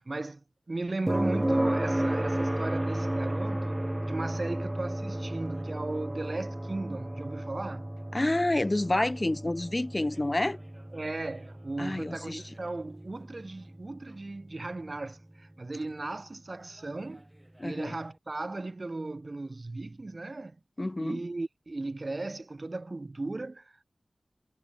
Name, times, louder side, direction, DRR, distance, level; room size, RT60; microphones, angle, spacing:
voice 1, 0.0-7.9 10.9-17.3 17.6-20.6 21.0-23.8, right 2 dB, 45° right, 0.7 m, -36 dB
sound 1, 1.1-14.9 17.2-17.3, right 1 dB, 15° right, 1.9 m, -33 dB
voice 2, 8.1-10.6 11.8-12.4 17.6-17.9 20.8-21.2, left 1 dB, 30° left, 1.6 m, -28 dB
wide cardioid pair, 75°, 0 cm